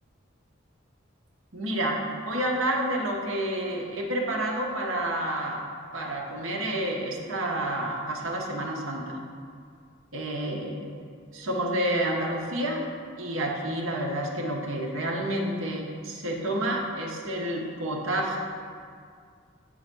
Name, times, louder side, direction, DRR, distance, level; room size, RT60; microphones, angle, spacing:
voice 1, 1.5-5.6 5.9-9.2 10.1-10.9 11.3-12.9 13.2-18.4, right 1 dB, 85° right, -1 dB, 1.2 m, -29 dB
8.7 x 4.0 x 6.1 m, 2.2 s
head